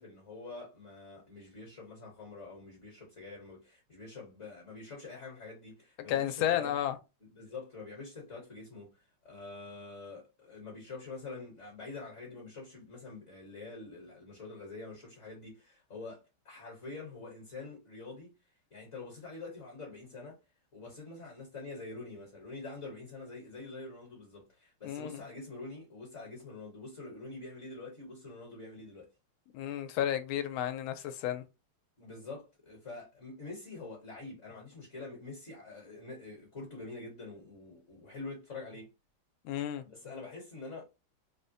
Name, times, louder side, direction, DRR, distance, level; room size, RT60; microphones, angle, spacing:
voice 1, 0.0-6.8 7.3-18.3 18.7-20.4 20.7-29.1 32.0-38.9 39.8-40.8, left 3 dB, 45° left, 1.2 m, -46 dB
voice 2, 6.1-6.9 24.8-25.2 29.5-31.4 39.4-39.8, left 11 dB, 90° left, 1.4 m, -32 dB
3.7 x 2.1 x 2.6 m
omnidirectional pair, 2.2 m